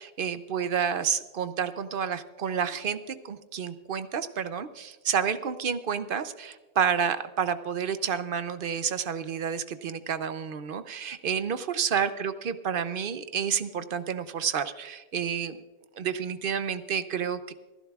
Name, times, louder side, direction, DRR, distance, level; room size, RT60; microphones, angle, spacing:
voice 1, 0.0-15.6 16.0-17.5, right 7 dB, 60° right, 12 dB, 0.8 m, -30 dB
28.0 x 11.0 x 2.4 m, 1.2 s
omnidirectional pair, 1.1 m